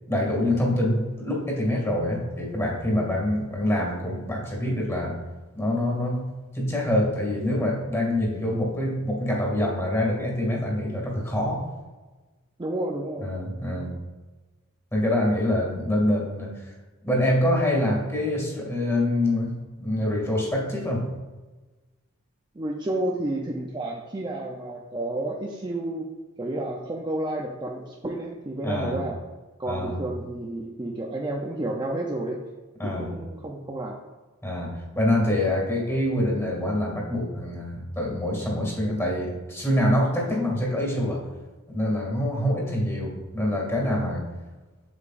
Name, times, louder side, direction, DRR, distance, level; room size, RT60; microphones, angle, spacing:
voice 1, 0.1-5.2 5.5-6.2 6.5-11.6 13.2-13.9 14.9-16.7 17.0-19.5 19.8-21.1 28.6-29.0 29.6-30.0 32.8-33.1 34.4-41.2 41.7-44.2, left 1 dB, 15° left, -2 dB, 2.1 m, -25 dB
voice 2, 12.6-13.3 15.5-15.6 22.6-26.1 26.4-29.2 29.6-32.4 32.8-34.0, right 1 dB, 20° right, 0 dB, 0.5 m, -31 dB
8.2 x 7.1 x 2.5 m, 1.2 s
head